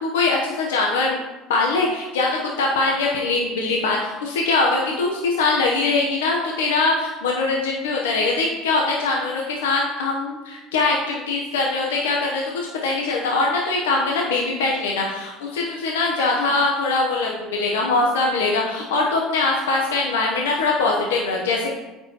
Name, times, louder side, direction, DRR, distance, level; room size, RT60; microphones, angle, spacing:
voice 1, 0.0-1.2 1.5-21.7, left 3 dB, 90° left, -1 dB, 0.8 m, -22 dB
8.7 x 4.6 x 2.9 m, 1.1 s
hypercardioid pair, 80°, 0 cm